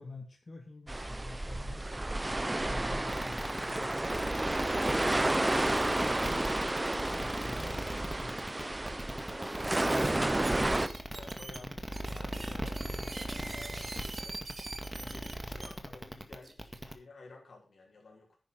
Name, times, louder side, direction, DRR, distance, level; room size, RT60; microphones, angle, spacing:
voice 1, 0.0-4.2 4.9-8.6, left 2 dB, 45° left, 3 dB, 2.3 m, -48 dB
sound 1, 0.9-10.9, right 1 dB, 25° right, 1.0 m, -31 dB
sound 2, 3.1-16.9, equal, 10° right, 2.0 m, -39 dB
sound 3, 5.9-6.0 6.2-6.3 6.9-7.1 8.0-8.1 8.6-8.7 9.5-10.1 10.4-15.7 16.4-16.8, right 3 dB, 50° right, 2.5 m, -45 dB
voice 2, 9.3-9.7 9.9-14.4 14.9-18.4, left 3 dB, 70° left, 1 dB, 5.1 m, -54 dB
10.5 x 10.0 x 5.5 m, 0.34 s
cardioid pair, 60°, 0 cm